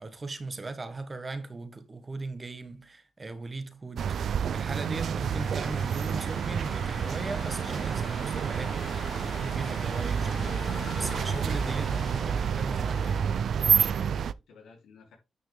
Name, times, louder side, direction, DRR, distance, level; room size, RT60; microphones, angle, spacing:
voice 1, 0.0-13.3, right 3 dB, 30° right, 1.7 m, -38 dB
sound 1, 4.0-14.3, right 7 dB, 70° right, 0.4 m, -29 dB
sound 2, 5.2-13.2, left 5 dB, 50° left, 0.4 m, -43 dB
voice 2, 11.1-11.8 13.6-15.2, left 5 dB, 85° left, 3.2 m, -54 dB
9.7 x 6.3 x 3.5 m
cardioid pair, 80°, 0 cm